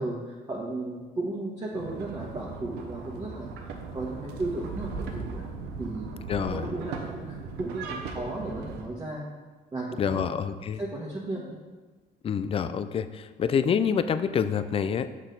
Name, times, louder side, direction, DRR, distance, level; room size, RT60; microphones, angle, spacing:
voice 1, 0.0-5.4 5.8-9.2 9.7-10.3 10.8-11.5, right 2 dB, 25° right, -5 dB, 1.3 m, -35 dB
sound 1, 1.7-8.8, right 4 dB, 85° right, 0.9 m, -38 dB
voice 2, 6.3-6.7 10.0-10.8 12.2-15.2, left 7 dB, 35° left, 12 dB, 0.4 m, -27 dB
6.3 x 6.1 x 3.9 m, 1.3 s
cardioid pair, 110°, 17 cm